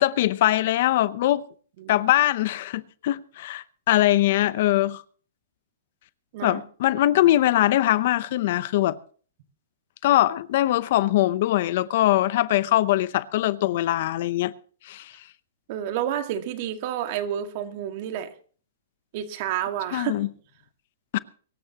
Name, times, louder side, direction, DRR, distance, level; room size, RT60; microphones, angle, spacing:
voice 1, 0.0-1.4 1.9-5.0 6.4-9.0 10.0-14.5 14.8-15.1 19.9-20.3 21.1-21.2, left 14 dB, 55° left, 0.7 m, -22 dB
voice 2, 15.7-18.3 19.1-20.3, right 10 dB, 45° right, 1.8 m, -30 dB
23.5 x 13.5 x 2.9 m
hypercardioid pair, 150°, 0 cm